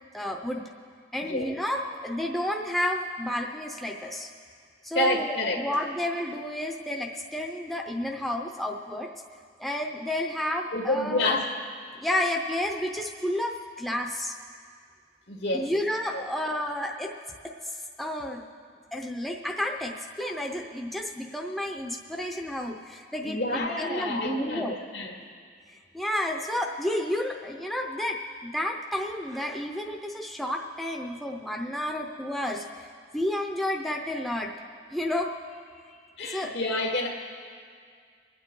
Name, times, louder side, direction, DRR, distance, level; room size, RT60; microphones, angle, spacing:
voice 1, 0.1-0.6 1.1-4.3 4.8-9.1 9.6-11.3 11.9-14.4 15.5-17.1 17.4-18.4 18.9-24.7 25.9-34.5 34.9-35.3 36.3-36.5, left 1 dB, ahead, 1 dB, 0.6 m, -31 dB
voice 2, 4.9-5.6 10.7-11.4 15.3-15.7 16.1-16.2 23.2-25.2 36.2-37.1, left 1 dB, 70° left, 1 dB, 2.0 m, -28 dB
25.0 x 9.0 x 3.8 m, 2.1 s
head